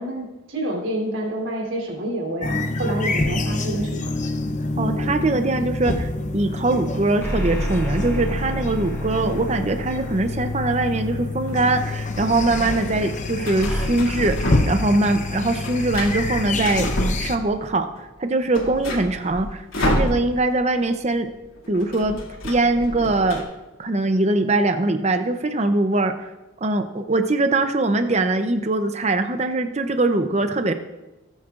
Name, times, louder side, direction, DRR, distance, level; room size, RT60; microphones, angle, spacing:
voice 1, 0.0-4.1, right 1 dB, 60° right, -1 dB, 3.3 m, -28 dB
sound 1, 2.4-17.4, left 2 dB, 35° left, 0.7 m, -27 dB
voice 2, 4.8-16.9 17.2-17.9 18.2-21.3 21.7-22.2 22.4-23.4 23.8-26.2 26.6-30.7, right 2 dB, 30° right, 8 dB, 0.6 m, -22 dB
sound 2, 7.2-11.8 13.6-13.9, right 1 dB, 15° left, 2.1 m, -30 dB
sound 3, 11.5-12.3 13.4-14.9 15.2-17.7 18.1-18.2 18.4-20.6 20.9-21.1 21.3-23.4, left 1 dB, 75° left, 2.6 m, -28 dB
18.5 x 9.6 x 2.5 m, 1.0 s
head